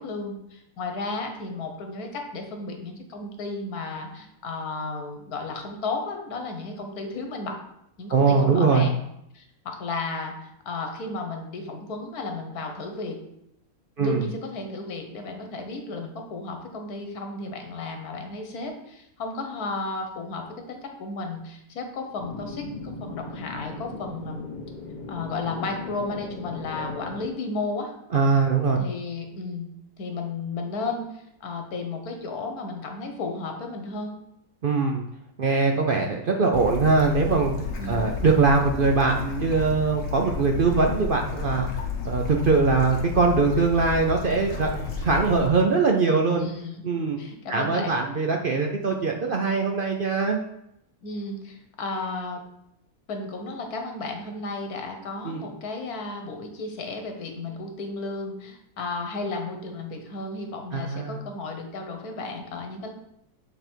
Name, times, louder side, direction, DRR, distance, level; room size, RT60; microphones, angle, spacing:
voice 1, 0.0-7.6 8.0-9.0 9.3-13.2 14.0-24.5 25.1-27.9 28.8-29.7 30.0-34.1 37.8-38.0 46.4-46.8 47.2-48.0 51.0-52.4 53.1-62.9, left 3 dB, 80° left, 4 dB, 1.6 m, -33 dB
voice 2, 8.1-8.9 14.0-14.2 28.1-28.8 34.6-35.0 35.4-37.5 37.9-41.7 42.0-46.5 46.8-47.2 47.5-50.4 55.2-55.4 60.7-61.2, right 4 dB, 55° right, 2 dB, 0.6 m, -22 dB
sound 1, 22.2-27.3, left 3 dB, 35° left, 1.0 m, -38 dB
Bird / Stream, 36.5-45.5, left 5 dB, 60° left, 1.3 m, -32 dB
7.8 x 4.2 x 4.5 m, 0.79 s
omnidirectional pair, 1.6 m